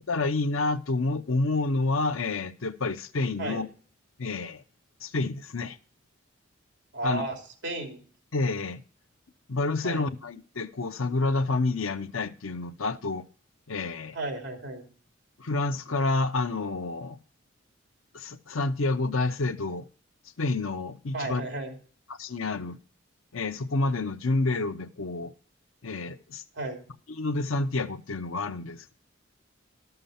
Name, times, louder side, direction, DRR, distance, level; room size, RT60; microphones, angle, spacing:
voice 1, 0.1-3.7 4.2-4.6 5.0-5.8 7.0-7.3 8.3-8.8 9.5-13.2 13.7-14.2 15.4-17.2 18.1-19.9 20.4-21.5 22.1-22.8 23.3-25.3 25.8-26.4 27.1-28.9, left 3 dB, 90° left, 0.7 m, -29 dB
voice 2, 6.9-7.4 7.6-8.0 9.8-10.1 14.1-14.9 21.1-21.8 26.5-26.8, right 2 dB, 60° right, 3.0 m, -33 dB
12.5 x 6.8 x 5.7 m
head